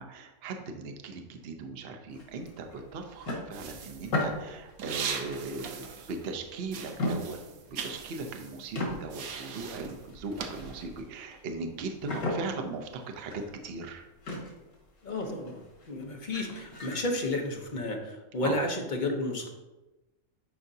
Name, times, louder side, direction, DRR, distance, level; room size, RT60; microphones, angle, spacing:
voice 1, 0.0-7.4 7.8-13.3 13.6-14.0 18.4-18.5, right 3 dB, 55° right, 4 dB, 0.8 m, -38 dB
sound 1, 2.1-6.6 6.9-8.4 8.7-17.8, left 2 dB, 90° left, 2.1 m, -38 dB
sound 2, 3.5-6.4 6.7-11.0, right 6 dB, 80° right, 1.2 m, -40 dB
voice 2, 15.0-15.6 15.9-19.5, left 2 dB, 40° left, 2 dB, 0.8 m, -32 dB
10.0 x 4.9 x 2.7 m, 1.1 s
omnidirectional pair, 1.5 m